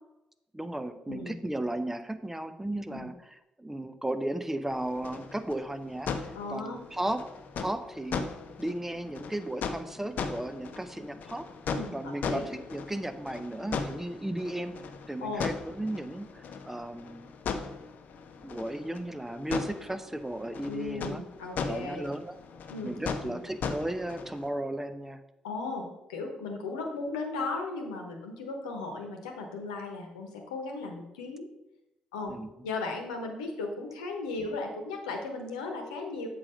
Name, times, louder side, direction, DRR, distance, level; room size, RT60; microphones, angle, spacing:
voice 1, 0.5-7.2 7.6-8.3 8.6-11.5 11.9-14.7 15.1-17.3 18.4-21.2 21.6-22.4 22.8-25.2 32.3-32.5, right 1 dB, 10° right, 10 dB, 0.8 m, -35 dB
sound 1, 4.7-24.5, left 5 dB, 60° left, 0.8 m, -38 dB
voice 2, 6.3-6.8 11.7-12.5 15.2-15.5 20.7-22.1 22.7-22.9 23.2-23.4 25.4-31.5 32.1-32.3 32.6-36.3, left 3 dB, 80° left, 3 dB, 1.1 m, -36 dB
7.4 x 5.0 x 5.1 m, 0.91 s
figure-of-eight pair, 40°, 3 cm